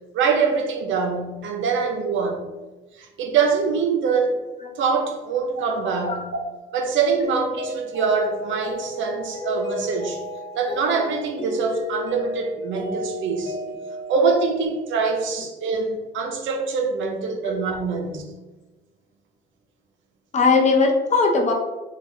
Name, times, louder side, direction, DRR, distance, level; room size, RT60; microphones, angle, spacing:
voice 1, 0.1-2.4 3.0-4.3 4.8-6.4 6.7-10.2 10.5-13.6 14.1-18.2, right 5 dB, 75° right, 4 dB, 0.5 m, -24 dB
voice 2, 5.8-6.2 20.3-21.5, left 4 dB, 35° left, 1 dB, 0.5 m, -19 dB
Mallet percussion, 7.2-15.4, left 1 dB, 65° left, 0.9 m, -33 dB
3.3 x 2.2 x 2.6 m, 1.2 s
cardioid pair, 90°, 20 cm